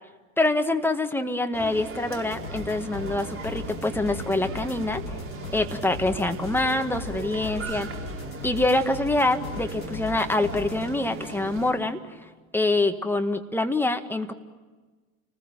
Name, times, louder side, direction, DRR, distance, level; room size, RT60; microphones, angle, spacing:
voice 1, 0.4-5.0 5.5-7.9 8.4-12.0 12.5-14.3, left 2 dB, 5° left, 6 dB, 1.9 m, -25 dB
sound 1, 1.5-11.7, right 5 dB, 30° right, 4.6 m, -39 dB
sound 2, 2.3-12.2, left 5 dB, 80° left, 3.3 m, -39 dB
30.0 x 20.5 x 9.1 m, 1.3 s
figure-of-eight pair, 80°, 42 cm